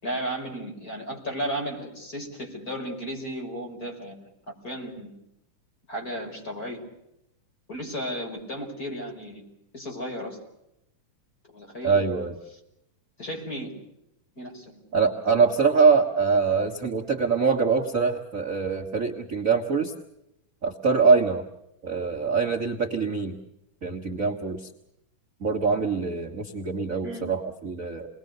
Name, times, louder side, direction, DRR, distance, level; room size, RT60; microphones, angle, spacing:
voice 1, 0.0-4.3 4.6-5.1 5.9-6.8 7.7-9.5 9.7-10.4 11.5-11.9 13.2-13.7 14.4-14.8 15.3-15.4 27.0-27.3, equal, 25° left, 0 dB, 6.2 m, -34 dB
voice 2, 11.8-12.3 14.9-19.9 20.6-21.4 21.8-23.4 23.8-24.7 25.4-28.1, right 5 dB, 35° right, 1 dB, 1.5 m, -23 dB
29.5 x 21.5 x 6.8 m, 0.82 s
omnidirectional pair, 3.7 m